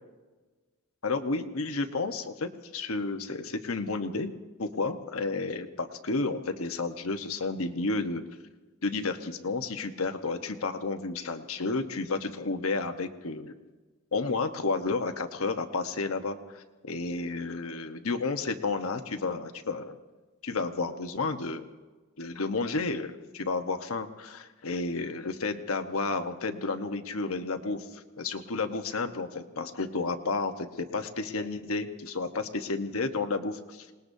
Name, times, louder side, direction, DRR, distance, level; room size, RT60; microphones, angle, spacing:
voice 1, 1.0-4.3 4.6-8.2 8.8-13.5 14.1-20.0 20.4-21.7 22.2-33.9, left 3 dB, 80° left, 7 dB, 1.1 m, -31 dB
27.0 x 19.5 x 2.7 m, 1.3 s
head